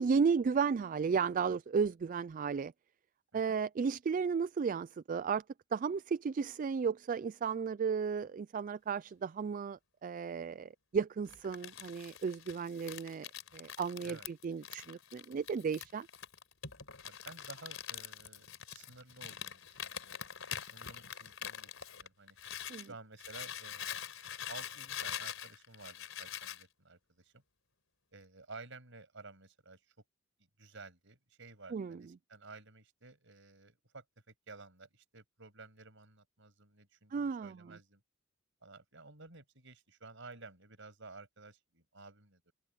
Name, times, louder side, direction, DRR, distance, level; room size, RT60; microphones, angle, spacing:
voice 1, 0.0-2.7 3.3-5.4 5.7-16.1 22.7-22.9 31.7-32.0 37.1-37.6, right 5 dB, 40° right, 0.3 m, -34 dB
Crumpling crinkling, 11.3-22.9 23.2-26.6, left 9 dB, 70° left, 4.4 m, -44 dB
voice 2, 17.0-22.4 22.8-24.1 24.5-27.4 28.1-29.8 30.6-38.0 38.6-42.5, right 3 dB, 60° right, 7.3 m, -54 dB
head